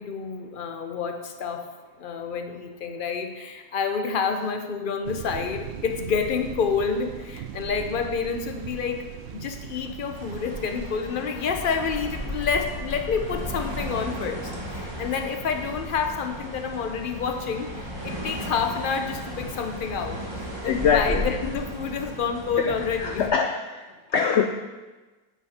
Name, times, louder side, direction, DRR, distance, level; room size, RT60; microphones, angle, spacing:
voice 1, 0.0-1.7 2.0-23.2, left 6 dB, 45° left, 6 dB, 0.7 m, -29 dB
sound 1, 5.0-10.6, right 8 dB, 90° right, 0.5 m, -39 dB
sound 2, 10.1-23.3, equal, 15° right, 1.6 m, -35 dB
voice 2, 20.7-21.2 22.6-24.5, left 6 dB, 85° left, 6 dB, 0.6 m, -24 dB
9.5 x 7.4 x 4.3 m, 1.2 s
omnidirectional pair, 1.8 m